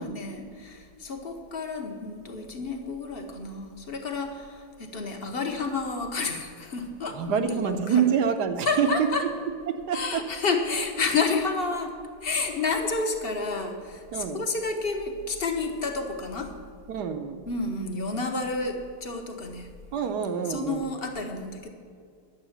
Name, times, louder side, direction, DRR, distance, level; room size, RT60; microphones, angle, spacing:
voice 1, 0.0-8.0 8.6-9.2 9.9-11.9 12.2-16.5 17.5-19.7 20.5-21.7, left 3 dB, 40° left, 4 dB, 0.8 m, -30 dB
voice 2, 7.1-9.1 9.7-10.2 14.1-14.5 16.9-17.5 19.9-20.9, right 7 dB, 65° right, 8 dB, 1.2 m, -26 dB
11.0 x 7.9 x 7.2 m, 2.3 s
omnidirectional pair, 2.2 m